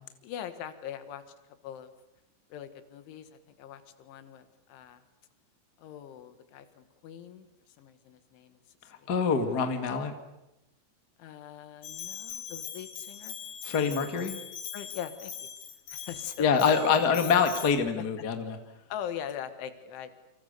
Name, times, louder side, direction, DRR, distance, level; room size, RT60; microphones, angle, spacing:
voice 1, 0.2-1.2 1.6-1.9 2.5-5.0 5.8-7.5 7.8-8.6 11.2-13.4 14.7-15.3 15.9-16.8 17.1-17.2 18.9-20.1, left 9 dB, 80° left, 10 dB, 4.0 m, -41 dB
voice 2, 9.1-10.1 13.6-14.3 16.4-18.6, left 6 dB, 40° left, 6 dB, 1.4 m, -25 dB
Bell, 11.8-17.7, left 8 dB, 55° left, 3.6 m, -41 dB
29.5 x 26.0 x 6.8 m, 0.92 s
omnidirectional pair, 5.5 m